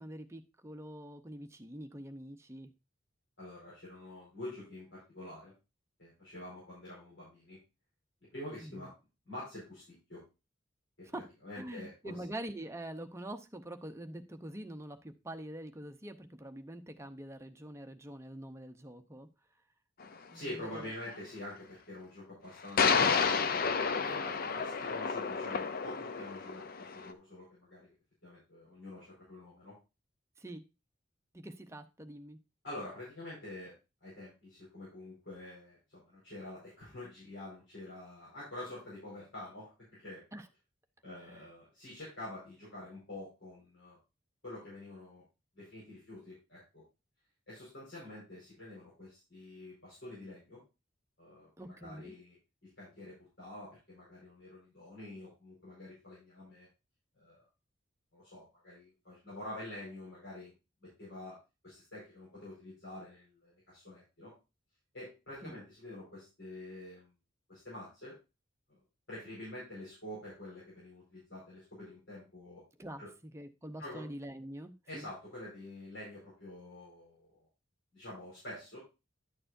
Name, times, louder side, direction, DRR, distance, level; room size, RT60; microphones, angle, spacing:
voice 1, 0.0-2.7 8.6-8.8 11.1-11.2 11.5-19.3 20.3-20.4 20.7-20.9 30.4-30.6 31.3-32.4 40.3-40.5 51.6-52.2 65.4-65.5 72.8-73.0 73.3-75.1, right 1 dB, 15° right, 7 dB, 0.7 m, -45 dB
voice 2, 3.4-5.5 6.0-7.6 8.3-8.9 9.3-10.2 11.1-12.1 20.3-27.9 28.2-29.7 32.6-33.7 34.0-40.2 41.0-44.0 44.4-45.2 45.5-46.8 47.5-50.6 51.2-52.4 52.8-56.7 57.2-57.4 58.1-60.5 60.8-61.4 61.6-64.3 64.9-67.1 67.5-68.2 69.1-72.6 73.0-73.1 73.8-74.1 74.9-77.5 77.9-78.8, left 1 dB, 65° left, -7 dB, 4.8 m, -47 dB
sound 1, 20.0-20.1 22.8-27.1, left 5 dB, 50° left, 0.5 m, -30 dB
11.0 x 6.7 x 2.6 m, 0.27 s
head